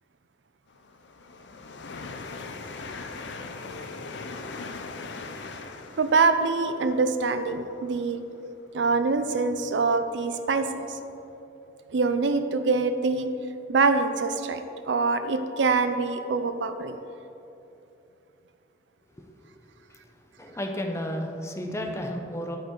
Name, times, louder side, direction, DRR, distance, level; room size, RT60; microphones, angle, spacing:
sound 1, 0.7-9.4 10.0-10.1 10.9-11.0, left 3 dB, 65° left, 0.6 m, -40 dB
voice 1, 6.0-8.2 8.7-11.0 11.9-13.3 13.7-14.6 14.9-17.0 21.7-21.9, right 4 dB, 65° right, 9 dB, 0.5 m, -24 dB
voice 2, 20.4-22.6, equal, 15° left, 3 dB, 0.6 m, -32 dB
13.0 x 5.5 x 3.8 m, 2.9 s
head